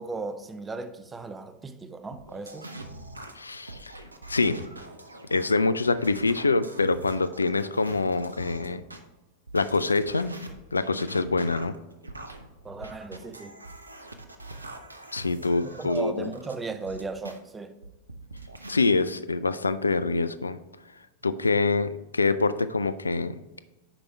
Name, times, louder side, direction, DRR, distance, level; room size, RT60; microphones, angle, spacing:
voice 1, 0.0-2.7 12.6-13.6 15.7-17.8, right 4 dB, 15° right, 0.5 m, -36 dB
sound 1, 2.1-9.0 9.5-17.4 17.8-18.7, right 2 dB, 80° right, 0.6 m, -43 dB
voice 2, 3.4-3.9 4.3-4.6 5.3-8.8 9.5-10.4 10.7-11.7 15.1-16.3 18.7-20.6 21.2-23.6, left 3 dB, 80° left, 0.3 m, -25 dB
5.9 x 5.0 x 4.5 m
figure-of-eight pair, 90°, 0 cm